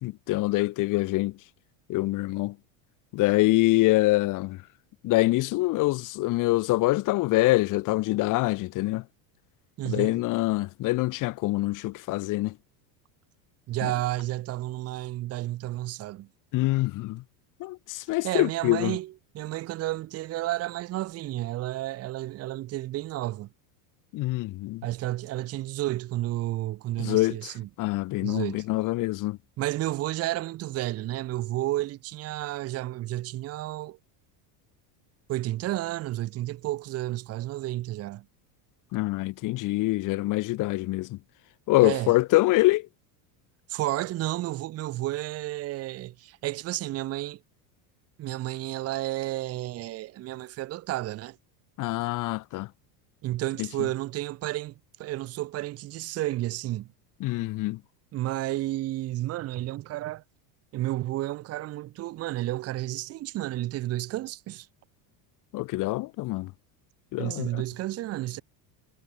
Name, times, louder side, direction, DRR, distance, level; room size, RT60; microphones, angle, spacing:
voice 1, 0.0-1.3 1.9-2.5 3.1-4.6 5.0-9.0 9.8-12.5 13.8-13.9 16.5-17.2 17.6-19.0 24.1-24.8 27.0-27.5 27.8-29.4 38.9-41.2 41.7-42.8 51.8-52.7 53.6-53.7 57.2-57.8 65.5-66.5 67.1-67.6, left 19 dB, 40° left, 1.2 m, -25 dB
voice 2, 9.8-10.2 13.7-16.3 17.9-23.5 24.8-27.7 28.2-28.7 29.6-34.0 35.3-38.3 41.8-42.1 43.7-47.4 48.2-51.4 53.2-54.7 55.0-56.9 58.1-60.2 60.7-64.7 67.2-68.4, right 16 dB, 30° right, 0.9 m, -31 dB
cardioid pair, 155°, 47 cm